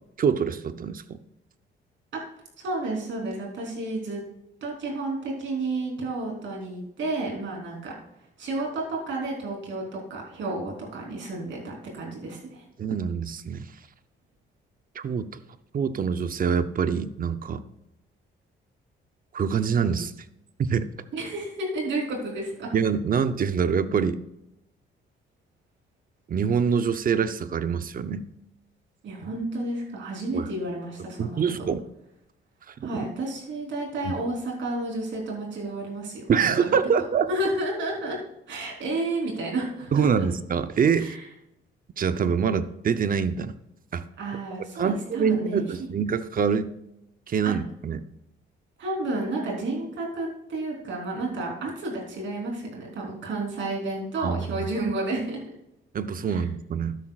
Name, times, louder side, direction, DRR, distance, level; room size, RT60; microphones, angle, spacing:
voice 1, 0.2-1.2 12.8-13.7 14.9-15.3 15.7-17.6 19.3-20.1 20.6-20.9 22.7-24.2 26.3-28.3 30.3-30.4 31.2-31.8 32.8-32.9 34.1-34.2 36.3-37.3 39.9-41.1 42.0-43.6 43.9-44.0 44.8-46.7 47.3-48.0 54.2-54.7 55.9-57.0, right 6 dB, 45° right, 11 dB, 0.7 m, -25 dB
voice 2, 2.6-4.2 4.6-7.9 8.4-12.6 21.1-22.7 29.0-31.4 32.8-36.8 37.3-38.2 38.5-40.3 41.0-41.3 44.2-45.8 47.5-47.6 48.8-55.4 56.3-56.4, right 2 dB, 70° right, -1 dB, 3.6 m, -31 dB
12.0 x 9.9 x 2.4 m, 0.85 s
cardioid pair, 90°, 20 cm